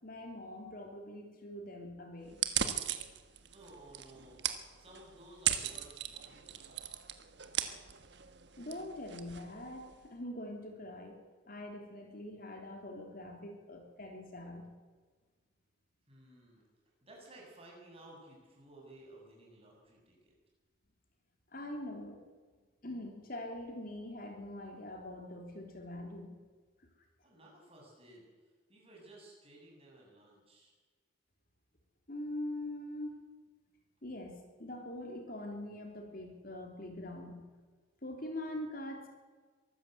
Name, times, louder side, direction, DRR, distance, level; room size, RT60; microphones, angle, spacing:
voice 1, 0.0-2.4 8.6-11.2 11.5-14.7 21.5-22.2 22.8-26.4 32.1-33.2 34.0-37.5 38.0-39.1, left 1 dB, 45° left, 2 dB, 3.3 m, -43 dB
sound 1, 2.3-10.1, right 10 dB, 60° right, 1.5 m, -38 dB
voice 2, 3.5-4.4 4.8-6.8 16.1-16.6 17.0-20.3 27.2-28.3 28.7-30.7, right 1 dB, 30° right, -2 dB, 7.5 m, -56 dB
23.5 x 14.0 x 8.1 m, 1.4 s
head